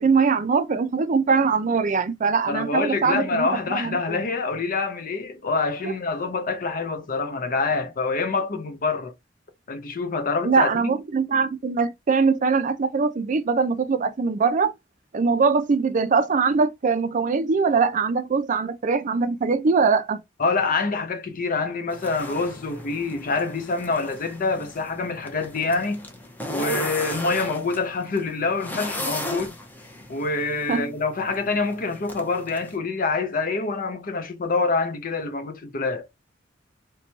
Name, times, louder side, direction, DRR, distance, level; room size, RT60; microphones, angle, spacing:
voice 1, 0.0-4.3 5.8-5.9 10.4-14.7 15.1-20.2 30.7-30.9, right 5 dB, 40° right, 0.4 m, -22 dB
voice 2, 2.5-9.1 9.7-10.9 20.4-26.0 26.5-29.6 30.1-36.1, left 3 dB, 45° left, 0.6 m, -26 dB
sound 1, 21.9-32.8, left 1 dB, 10° left, 0.6 m, -36 dB
2.9 x 2.2 x 3.9 m
head